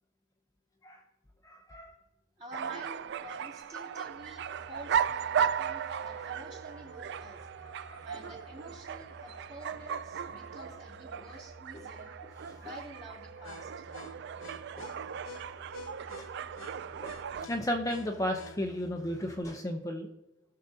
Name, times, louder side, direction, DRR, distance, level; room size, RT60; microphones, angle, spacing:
voice 1, 1.4-2.0 5.6-5.7 6.1-6.3 7.6-8.3 11.3-11.4 11.7-11.8 12.5-12.6 14.8-14.9 15.5-15.6 16.2-16.3 17.0-17.2 17.4-20.1, equal, 15° left, 2 dB, 0.7 m, -35 dB
voice 2, 2.4-7.4 8.0-12.1 12.6-13.8, right 1 dB, 35° right, -2 dB, 2.7 m, -49 dB
sound 1, 2.5-17.5, right 8 dB, 55° right, 0.3 m, -36 dB
sound 2, 4.1-19.4, left 2 dB, 90° left, 0.9 m, -52 dB
17.0 x 6.6 x 2.7 m, 0.94 s
head